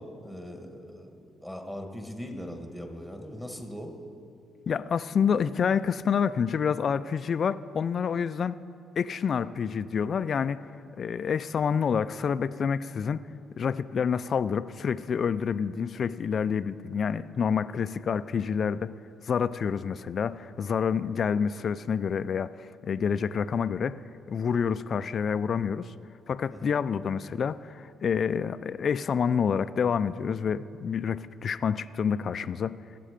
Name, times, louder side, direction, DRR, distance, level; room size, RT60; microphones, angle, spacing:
voice 1, 0.0-4.0 26.5-26.7, equal, 5° right, 4 dB, 1.6 m, -40 dB
voice 2, 4.7-8.5 9.0-10.6 11.0-13.2 13.6-18.9 19.3-24.0 24.3-25.9 26.3-32.8, left 6 dB, 50° left, 14 dB, 0.4 m, -28 dB
20.5 x 7.6 x 5.1 m, 2.4 s
cardioid pair, 90°, 0 cm